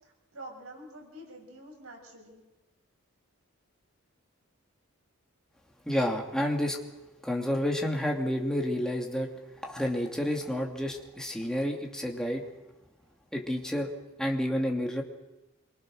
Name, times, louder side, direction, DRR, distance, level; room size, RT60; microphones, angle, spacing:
voice 1, 0.0-2.4, right 1 dB, 80° right, 1 dB, 7.0 m, -47 dB
voice 2, 5.8-6.8 7.2-9.3 9.6-12.4 13.3-13.9 14.2-15.0, equal, 5° left, 0 dB, 2.8 m, -30 dB
26.5 x 24.5 x 6.6 m, 1.0 s
head